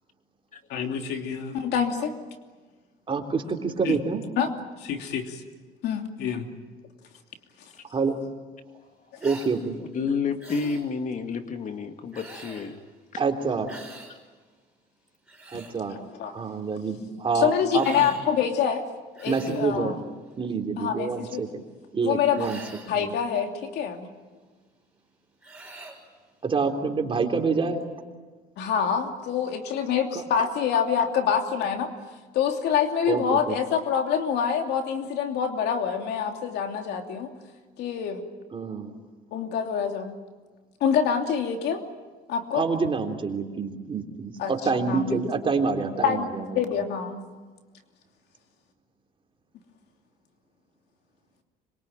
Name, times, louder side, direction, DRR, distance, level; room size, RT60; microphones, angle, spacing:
voice 1, 0.7-2.1 3.8-4.0 4.4-4.5 4.8-5.4 5.8-6.5 16.1-16.3 17.3-18.8 19.2-20.0 20.8-21.4 22.0-22.4 22.9-24.1 28.6-31.9 32.3-37.3 37.8-38.2 39.3-40.2 40.8-41.8 42.3-42.6 44.4-44.5 44.9-45.2 46.0-46.3 46.5-47.2, left 7 dB, 75° left, 4 dB, 2.9 m, -26 dB
voice 2, 3.1-4.2 7.9-8.1 9.2-9.8 13.2-13.7 15.5-16.0 16.3-18.1 19.3-20.0 20.4-21.6 21.9-22.6 23.0-23.1 26.4-27.8 30.1-30.5 33.1-33.6 38.5-39.0 42.5-46.6, right 4 dB, 30° right, 3 dB, 3.5 m, -27 dB
sound 1, 9.2-9.6 10.4-10.8 12.1-12.7 13.7-14.1 15.1-15.7 17.7-18.3 19.1-19.7 22.3-23.0 25.4-26.0, right 2 dB, 5° right, 6.6 m, -43 dB
voice 3, 9.8-12.8 13.1-13.2, left 5 dB, 50° left, 6 dB, 2.2 m, -30 dB
26.0 x 23.0 x 9.1 m, 1.3 s
cardioid pair, 110°, 17 cm